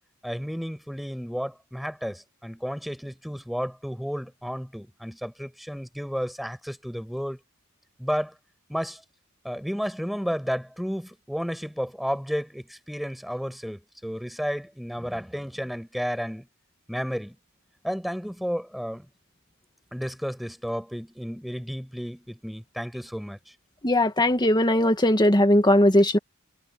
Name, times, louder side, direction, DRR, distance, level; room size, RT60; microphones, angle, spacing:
voice 1, 0.2-7.4 8.0-8.3 8.7-9.0 9.4-16.5 16.9-17.4 17.8-19.1 19.9-23.4, equal, ahead, 7.4 m, -32 dB
voice 2, 23.8-26.2, left 1 dB, 20° left, 2.0 m, -19 dB
head